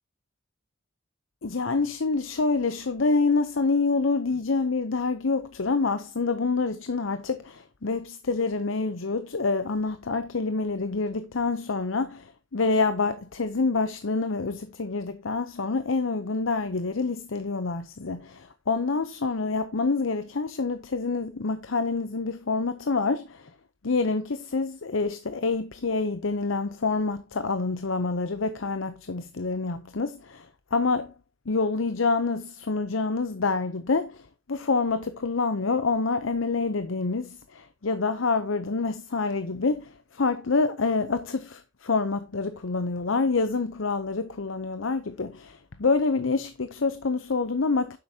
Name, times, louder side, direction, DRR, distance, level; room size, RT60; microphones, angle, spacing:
voice 1, 1.4-23.5 23.8-31.1 31.5-48.0, left 4 dB, 75° left, 0.8 m, -27 dB
9.8 x 7.8 x 2.8 m
head